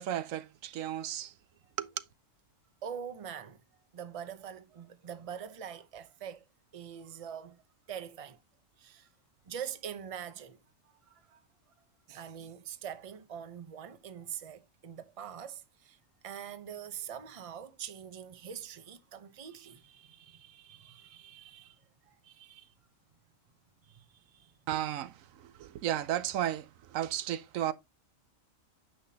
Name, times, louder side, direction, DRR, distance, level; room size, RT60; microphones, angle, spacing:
voice 1, 0.0-1.3 1.8-2.1 24.7-27.7, right 11 dB, 85° right, 1.0 m, -34 dB
voice 2, 2.8-3.6 3.9-6.4 6.7-7.6 7.9-8.4 8.8-9.1 9.5-10.6 11.1-11.4 12.1-16.0 16.2-21.8 22.0-22.7 23.8-24.5, right 8 dB, 30° right, 0.7 m, -44 dB
9.6 x 5.8 x 2.8 m
omnidirectional pair, 1.4 m